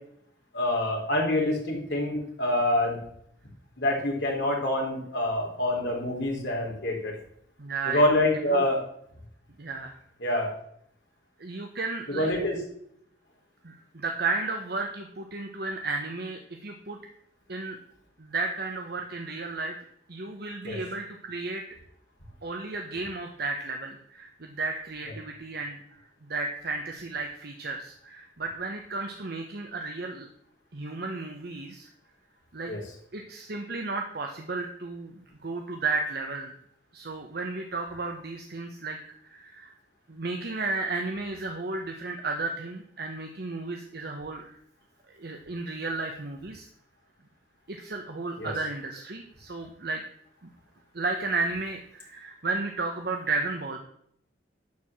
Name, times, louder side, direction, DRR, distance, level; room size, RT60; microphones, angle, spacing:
voice 1, 0.5-3.0 3.8-7.1 7.9-8.8 10.2-10.5 12.1-12.6 20.6-20.8 32.7-32.8 48.4-48.5, left 1 dB, 70° left, -2 dB, 3.7 m, -26 dB
voice 2, 7.6-8.0 8.5-8.6 9.6-10.0 11.4-12.3 13.6-17.0 17.5-17.8 18.2-19.8 20.1-21.6 22.4-26.0 26.3-30.3 30.7-31.9 32.5-32.7 33.1-36.5 36.9-39.0 39.2-39.7 40.1-44.5 45.1-46.7 47.7-50.0 50.9-53.8, right 3 dB, 55° right, 3 dB, 1.0 m, -33 dB
12.0 x 4.8 x 7.3 m, 0.69 s
head